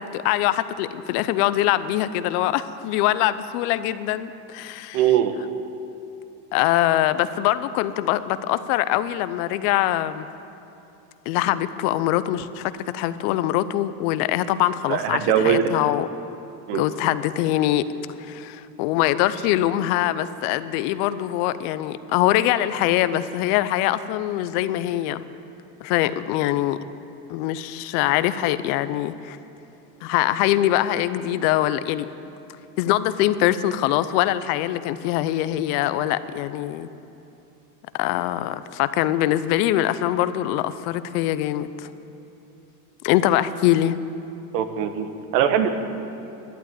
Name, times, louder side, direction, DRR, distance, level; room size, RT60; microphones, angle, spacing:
voice 1, 0.0-5.0 6.5-10.3 11.3-16.1 16.7-17.9 18.2-25.3 25.8-26.8 27.3-29.4 30.0-32.1 32.8-36.9 37.9-41.9 43.0-44.0, left 13 dB, 65° left, 14 dB, 0.8 m, -23 dB
voice 2, 4.9-5.3 14.9-15.6 16.7-16.8 44.5-45.1 45.3-45.7, right 10 dB, 75° right, 8 dB, 1.5 m, -20 dB
12.0 x 11.0 x 8.6 m, 2.9 s
supercardioid pair, 110°, 48 cm